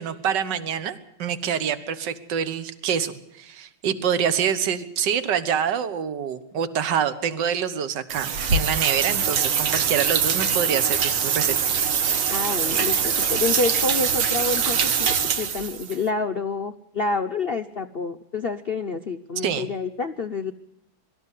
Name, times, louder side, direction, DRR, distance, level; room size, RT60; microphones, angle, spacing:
voice 1, 0.0-11.7 19.4-19.7, right 8 dB, 60° right, 12 dB, 1.8 m, -26 dB
sound 1, 8.1-16.0, right 7 dB, 85° right, 2.2 m, -23 dB
voice 2, 12.3-20.5, left 4 dB, 70° left, 6 dB, 0.5 m, -28 dB
23.0 x 13.5 x 8.3 m, 0.83 s
omnidirectional pair, 2.2 m